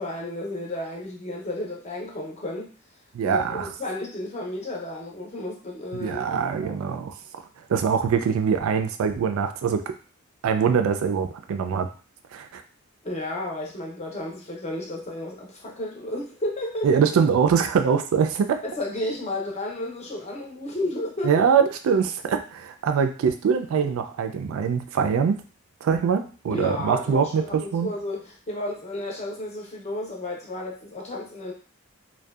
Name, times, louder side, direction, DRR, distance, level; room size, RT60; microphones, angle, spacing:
voice 1, 0.0-2.7 3.2-6.8 13.0-17.0 18.6-21.4 26.5-31.5, left 1 dB, 35° left, -1 dB, 0.6 m, -32 dB
voice 2, 3.1-3.7 5.9-7.1 7.7-9.8 10.4-11.9 12.3-12.6 16.8-18.6 21.2-25.4 25.8-27.9, right 6 dB, 75° right, 8 dB, 0.3 m, -23 dB
2.6 x 2.2 x 2.3 m, 0.38 s
head